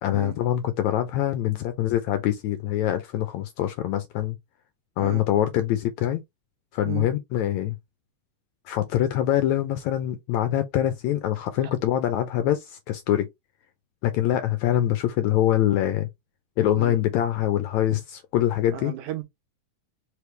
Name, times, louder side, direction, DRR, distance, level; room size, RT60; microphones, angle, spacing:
voice 1, 0.0-4.4 5.0-6.2 6.7-7.8 8.7-13.3 14.0-16.1 16.6-18.9, left 12 dB, 80° left, 1.7 m, -24 dB
voice 2, 18.7-19.2, right 13 dB, 75° right, 2.2 m, -34 dB
4.9 x 3.2 x 3.3 m
omnidirectional pair, 3.7 m